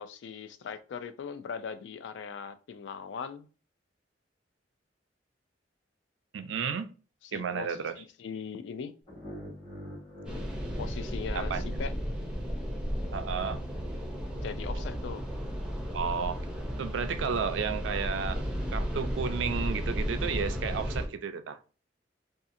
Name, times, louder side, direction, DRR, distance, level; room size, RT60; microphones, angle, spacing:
voice 1, 0.0-3.5 7.3-9.0 10.8-11.9 14.4-15.2, left 6 dB, 70° left, 0.3 m, -40 dB
voice 2, 6.3-6.9 7.3-7.9 11.3-11.8 13.1-13.6 15.9-16.4 16.8-18.4 18.7-21.6, right 6 dB, 85° right, 0.4 m, -32 dB
sound 1, 9.1-12.1, left 1 dB, 30° left, 1.2 m, -45 dB
sound 2, 10.3-21.1, equal, 5° right, 0.5 m, -34 dB
2.7 x 2.4 x 2.5 m
head